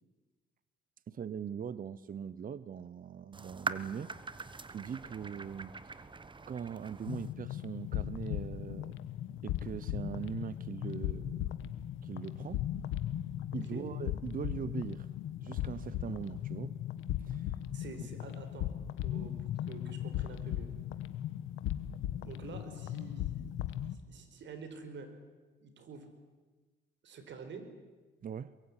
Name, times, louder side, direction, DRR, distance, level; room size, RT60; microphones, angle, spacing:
voice 1, 1.1-4.4 4.7-6.0 6.5-9.0 9.4-11.5 12.0-12.6 13.5-15.1 15.4-16.8 17.3-17.5 18.0-18.1 28.2-28.6, right 7 dB, 45° right, 17 dB, 0.9 m, -41 dB
sound 1, 3.3-7.3, right 4 dB, 25° right, 1.3 m, -42 dB
sound 2, 7.1-24.0, left 12 dB, 90° left, 1.3 m, -38 dB
voice 2, 13.5-13.9 17.7-18.7 19.0-20.7 22.1-25.1 25.6-26.1 27.0-27.7, right 5 dB, 65° right, 8 dB, 4.8 m, -48 dB
23.0 x 22.5 x 9.9 m, 1.3 s
cardioid pair, 90°, 20 cm